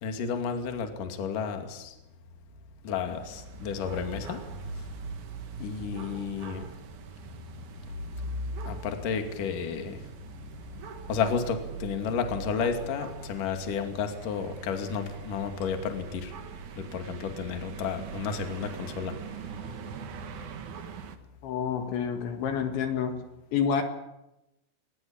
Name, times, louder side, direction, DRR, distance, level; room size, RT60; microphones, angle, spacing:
voice 1, 0.0-2.0 2.8-4.4 4.7-4.9 5.6-6.7 8.7-10.0 11.1-16.3 16.8-19.2, left 6 dB, 50° left, 5 dB, 3.5 m, -32 dB
sound 1, 3.1-21.2, right 7 dB, 60° right, 2.1 m, -42 dB
voice 2, 21.4-23.2 23.5-23.8, left 7 dB, 70° left, 5 dB, 4.1 m, -28 dB
23.5 x 20.0 x 8.7 m, 0.92 s
omnidirectional pair, 5.7 m